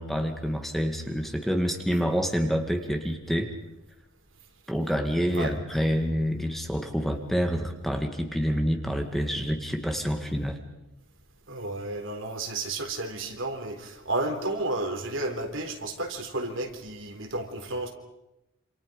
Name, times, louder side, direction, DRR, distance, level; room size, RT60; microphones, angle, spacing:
voice 1, 0.0-3.5 4.7-10.6, equal, ahead, 2.1 m, -27 dB
voice 2, 11.5-17.9, right 2 dB, 65° right, 3.8 m, -32 dB
28.0 x 28.0 x 5.3 m
head